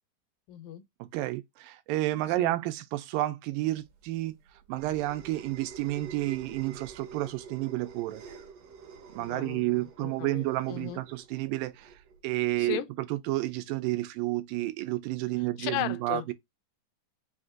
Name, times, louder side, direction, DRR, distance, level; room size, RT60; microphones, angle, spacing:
voice 1, 0.5-0.8 2.4-2.5 9.2-11.0 12.6-12.9 15.6-16.3, left 13 dB, 85° left, 2.2 m, -36 dB
voice 2, 1.0-4.4 4.7-8.2 9.2-11.9 12.2-16.3, right 17 dB, 85° right, 2.2 m, -31 dB
sound 1, 3.9-12.7, right 6 dB, 70° right, 1.6 m, -48 dB
5.7 x 2.6 x 2.4 m
omnidirectional pair, 3.9 m